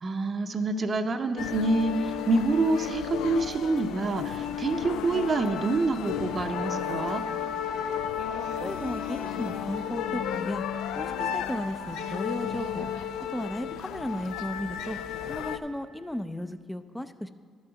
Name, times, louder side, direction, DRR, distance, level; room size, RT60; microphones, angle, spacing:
voice 1, 0.0-7.2, right 3 dB, 45° right, 6 dB, 0.6 m, -27 dB
sound 1, 1.4-15.6, left 8 dB, 90° left, 0.4 m, -33 dB
voice 2, 8.6-10.6 11.0-12.9 13.3-15.0 15.3-17.3, left 1 dB, 5° left, 11 dB, 0.4 m, -35 dB
11.5 x 6.3 x 5.8 m, 2.1 s
cardioid pair, 90°, 0 cm